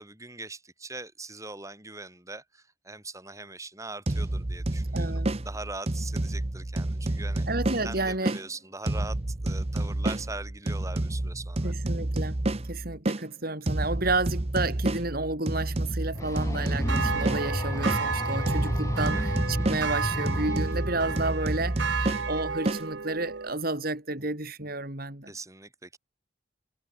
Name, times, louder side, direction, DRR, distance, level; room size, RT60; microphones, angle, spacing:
voice 1, 0.0-7.5 7.8-11.7 16.1-16.5 19.0-19.2 25.3-26.0, right 3 dB, 15° right, 5.3 m, -41 dB
sound 1, 4.1-8.4 8.9-13.2 13.7-18.0 18.5-22.8, right 1 dB, 30° right, 0.8 m, -30 dB
voice 2, 4.9-5.4 7.5-8.4 11.6-12.4 12.7-25.3, right 2 dB, 50° right, 3.9 m, -31 dB
sound 2, 16.1-21.2, left 1 dB, 15° left, 0.8 m, -32 dB
sound 3, 16.8-23.5, right 5 dB, 65° right, 0.9 m, -33 dB
head